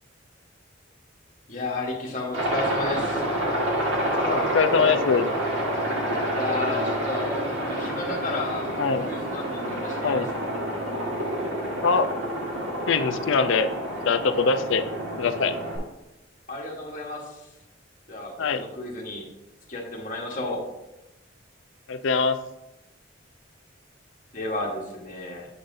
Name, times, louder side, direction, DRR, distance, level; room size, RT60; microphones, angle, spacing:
voice 1, 1.5-3.2 6.3-8.8 9.0-10.6 16.5-17.5 18.1-19.3 19.7-20.6 24.3-25.5, left 2 dB, 40° left, -1 dB, 1.2 m, -33 dB
Aircraft, 2.3-15.8, right 1 dB, 80° right, 1.7 m, -28 dB
voice 2, 4.3-5.3 8.8-9.1 10.0-10.3 11.8-12.1 12.9-13.7 14.0-14.8 15.2-15.5 18.4-18.6 21.9-22.4, left 5 dB, 70° left, 10 dB, 0.5 m, -22 dB
8.0 x 5.5 x 2.6 m, 0.96 s
head